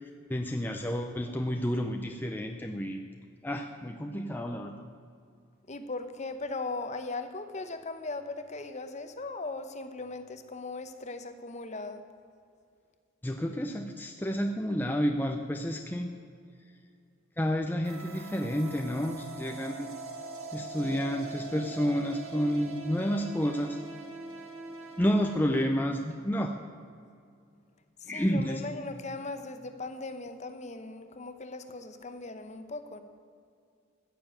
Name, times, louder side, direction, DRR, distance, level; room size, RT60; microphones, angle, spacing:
voice 1, 0.0-3.0 3.4-4.8 13.2-16.1 17.4-19.9 20.5-23.8 25.0-26.5 28.1-28.6, equal, 10° left, 3 dB, 0.6 m, -30 dB
voice 2, 5.7-12.0 28.0-33.0, left 3 dB, 35° left, 9 dB, 0.9 m, -38 dB
sound 1, 17.8-25.4, right 3 dB, 80° right, 1.7 m, -43 dB
15.0 x 6.9 x 9.0 m, 2.3 s
head